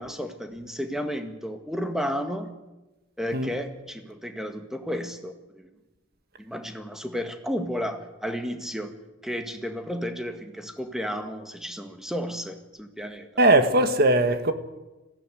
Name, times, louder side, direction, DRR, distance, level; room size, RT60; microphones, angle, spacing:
voice 1, 0.0-2.5 3.2-5.7 6.4-8.9 9.2-13.6, equal, 5° right, 1.8 m, -33 dB
voice 2, 13.4-14.5, right 1 dB, 50° right, 1.8 m, -19 dB
20.5 x 16.0 x 9.5 m
head